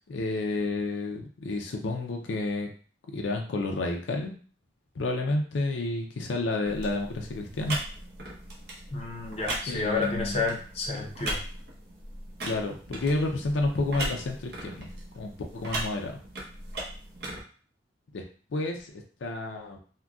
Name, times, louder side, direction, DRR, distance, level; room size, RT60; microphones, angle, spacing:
voice 1, 0.1-2.7 3.1-4.4 5.0-7.8 9.7-10.4 10.9-11.1 12.4-14.9 15.2-16.2 18.1-18.2 18.5-19.8, left 2 dB, 80° left, 2 dB, 0.5 m, -30 dB
sound 1, 6.6-17.4, right 1 dB, 60° right, 0.9 m, -38 dB
voice 2, 8.9-11.4, left 4 dB, 35° left, 0 dB, 0.6 m, -31 dB
3.7 x 2.2 x 2.3 m, 0.42 s
head